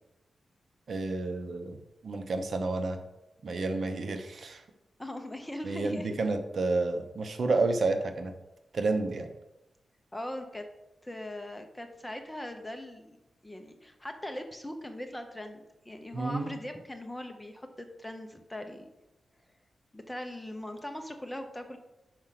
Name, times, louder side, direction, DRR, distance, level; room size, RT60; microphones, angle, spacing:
voice 1, 0.9-3.0 3.4-4.6 5.6-8.3 8.7-9.3 16.1-16.5, right 3 dB, 55° right, 7 dB, 0.8 m, -30 dB
voice 2, 5.0-6.2 10.1-10.6 11.0-13.2 13.4-18.9 19.9-21.8, left 1 dB, 10° left, 5 dB, 0.8 m, -40 dB
6.3 x 4.9 x 5.8 m, 0.95 s
wide cardioid pair, 120°, 0 cm